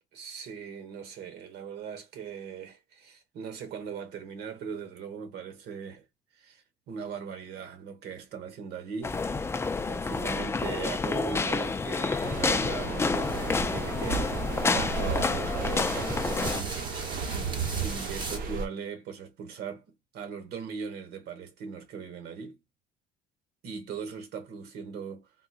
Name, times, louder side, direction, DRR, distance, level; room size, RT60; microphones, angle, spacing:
voice 1, 0.1-6.0 6.3-9.2 9.5-17.0 17.7-19.8 20.1-22.6 23.6-25.3, right 6 dB, 75° right, 1.1 m, -39 dB
sound 1, 9.0-16.6, left 4 dB, 15° left, 0.3 m, -29 dB
sound 2, 12.2-18.7, right 5 dB, 55° right, 0.9 m, -34 dB
sound 3, 13.2-18.4, right 2 dB, 25° right, 1.0 m, -42 dB
3.7 x 2.8 x 2.3 m
cardioid pair, 110°, 17 cm